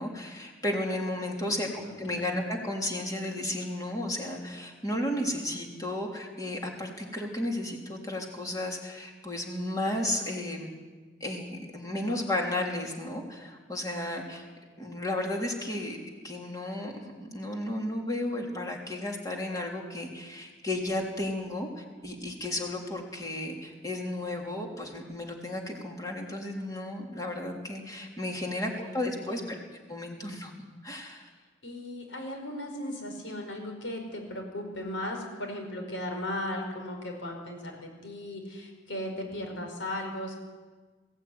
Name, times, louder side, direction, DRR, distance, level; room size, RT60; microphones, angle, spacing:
voice 1, 0.0-1.7 2.0-10.7 11.2-14.5 14.8-16.0 16.2-29.6 29.9-30.5 30.8-31.3, left 1 dB, 20° left, 0 dB, 3.4 m, -33 dB
voice 2, 1.4-2.3 28.6-29.5 31.6-40.3, left 1 dB, 90° left, 3 dB, 5.2 m, -37 dB
21.5 x 15.5 x 9.6 m, 1.4 s
head